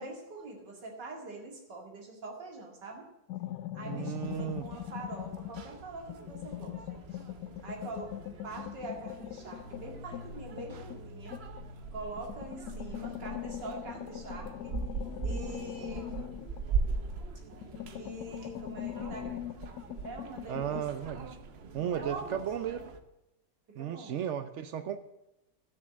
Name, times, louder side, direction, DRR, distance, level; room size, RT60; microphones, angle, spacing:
voice 1, 0.0-3.1 3.7-6.8 7.1-7.3 7.6-11.4 11.9-14.8 15.2-16.2 17.9-19.4 19.9-20.8 21.9-22.8 23.8-24.2, right 3 dB, 65° right, 0 dB, 2.9 m, -44 dB
sound 1, 3.3-5.7 6.1-11.7 12.2-17.2 17.5-20.9, left 13 dB, 70° left, 1.0 m, -42 dB
voice 2, 3.9-4.7 20.5-21.4 21.7-22.8 23.7-25.0, right 9 dB, 90° right, 10 dB, 0.6 m, -34 dB
sound 2, 4.2-23.0, right 4 dB, 45° right, 0.8 m, -41 dB
12.5 x 6.7 x 7.3 m, 0.91 s
omnidirectional pair, 2.0 m